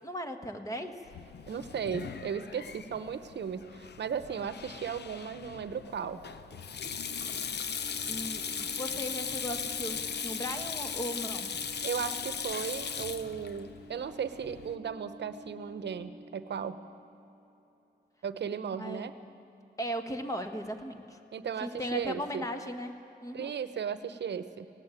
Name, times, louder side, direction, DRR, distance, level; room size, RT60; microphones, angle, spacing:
voice 1, 0.0-1.0 8.1-11.5 18.8-19.1 19.8-21.2 21.6-23.5, equal, 20° left, 6 dB, 1.5 m, -37 dB
Sink (filling or washing), 1.1-14.7, left 7 dB, 70° left, 0.8 m, -38 dB
voice 2, 1.5-6.2 11.8-16.8 18.2-19.1 21.3-22.4 23.3-24.7, right 7 dB, 75° right, 12 dB, 0.9 m, -36 dB
sound 1, 6.5-18.0, equal, 20° right, 1.4 m, -51 dB
18.0 x 17.5 x 9.1 m, 2.9 s
wide cardioid pair, 115°, 18 cm